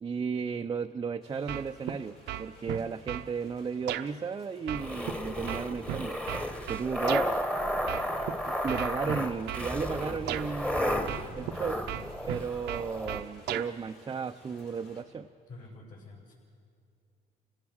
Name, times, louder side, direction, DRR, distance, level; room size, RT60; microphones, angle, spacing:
voice 1, 0.0-6.3 6.7-7.2 8.5-11.8 12.3-15.3, right 5 dB, 25° right, 5 dB, 0.5 m, -34 dB
sound 1, 1.2-15.0, left 1 dB, 75° left, 6.9 m, -55 dB
sound 2, 1.5-2.0 2.3-3.3 3.9-4.1 4.7-7.3 7.9-8.3 8.7-9.7 10.3-10.5 11.1-11.6 11.9-13.7, right 12 dB, 80° right, 0.8 m, -35 dB
sound 3, 4.7-13.2, equal, 5° left, 1.3 m, -33 dB
voice 2, 15.5-16.3, left 2 dB, 55° left, -7 dB, 5.9 m, -48 dB
30.0 x 17.5 x 6.3 m, 2.3 s
cardioid pair, 110°, 17 cm